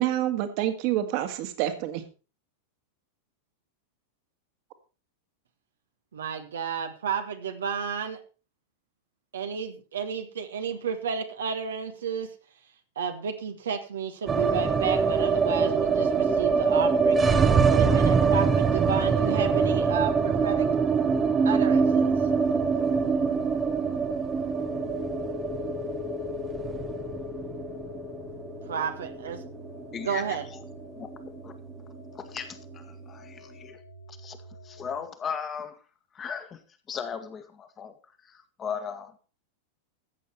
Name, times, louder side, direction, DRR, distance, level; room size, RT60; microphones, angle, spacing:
voice 1, 0.0-2.0, right 12 dB, 45° right, 7 dB, 2.0 m, -27 dB
voice 2, 6.1-8.2 9.3-12.3 12.9-17.3 17.7-20.7 21.4-22.2 28.7-29.4 30.0-30.4, right 7 dB, 65° right, 6 dB, 1.3 m, -32 dB
sound 1, 14.3-30.4 30.6-30.7 31.0-31.7, right 5 dB, 20° right, 1.1 m, -24 dB
sound 2, 18.9-35.0, equal, 75° left, 3.3 m, -49 dB
sound 3, 24.4-31.9, left 13 dB, 40° left, 1.0 m, -39 dB
voice 3, 29.9-30.6 31.0-31.1 31.4-31.5 32.1-33.8 34.1-34.4 34.6-35.8 36.1-36.6 36.9-37.9 38.2-39.1, left 7 dB, 25° left, 8 dB, 1.8 m, -37 dB
14.0 x 8.4 x 4.4 m, 0.35 s
figure-of-eight pair, 90°, 0 cm